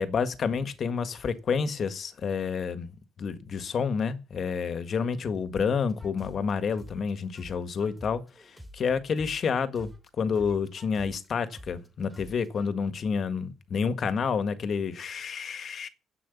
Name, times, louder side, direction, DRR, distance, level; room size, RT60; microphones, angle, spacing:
voice 1, 0.0-2.9 3.2-9.9 10.2-15.9, left 6 dB, 45° left, 1.7 m, -29 dB
sound 1, 5.9-9.5 9.8-12.7, equal, 5° right, 2.5 m, -48 dB
11.0 x 8.4 x 8.2 m
cardioid pair, 135°, 0 cm